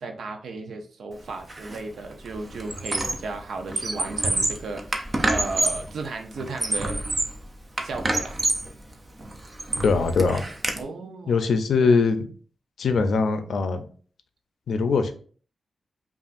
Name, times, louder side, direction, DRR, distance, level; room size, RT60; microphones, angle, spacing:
voice 1, 0.0-7.0 7.8-8.4 10.7-11.5 11.8-11.9, right 3 dB, 75° right, 5 dB, 0.6 m, -35 dB
Squeak, 1.5-1.8 2.1-3.3 3.6-5.9 6.4-7.4 7.8-8.7 9.2-10.8, right 2 dB, 25° right, 0.4 m, -27 dB
voice 2, 9.8-10.4 11.3-12.3 12.8-13.8 14.7-15.1, left 4 dB, 70° left, 8 dB, 0.5 m, -21 dB
5.4 x 2.5 x 2.5 m, 0.43 s
wide cardioid pair, 170°, 0 cm